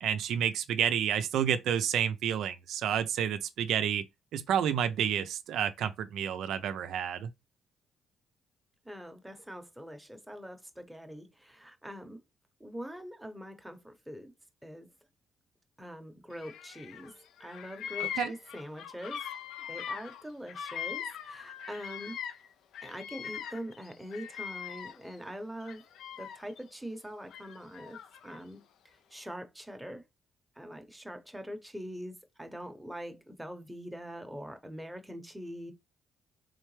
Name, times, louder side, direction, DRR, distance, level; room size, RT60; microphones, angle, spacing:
voice 1, 0.0-4.0 4.3-7.3 18.0-18.3, right 9 dB, 80° right, 0.4 m, -30 dB
voice 2, 8.8-12.2 12.6-14.3 14.6-14.9 15.8-19.2 19.7-22.2 22.8-25.9 26.2-28.0 28.2-28.6 29.1-30.0 30.6-35.7, equal, 5° right, 0.8 m, -43 dB
Bird vocalization bird call bird song, 16.4-17.1 17.4-22.5 22.7-25.1 25.6-26.6 27.3-28.4, left 8 dB, 80° left, 0.5 m, -41 dB
3.7 x 3.2 x 3.1 m
cardioid pair, 90°, 0 cm